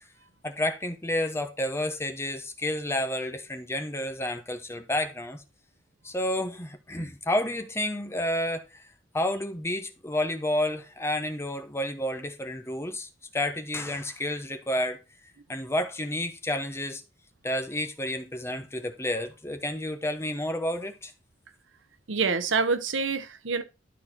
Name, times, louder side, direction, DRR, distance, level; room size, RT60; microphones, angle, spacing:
voice 1, 0.4-5.4 6.0-8.8 9.1-15.0 15.5-17.0 17.4-21.1, left 1 dB, 15° left, 1.1 m, -30 dB
voice 2, 22.1-23.6, right 4 dB, 80° right, 0.8 m, -26 dB
12.5 x 4.3 x 4.3 m
head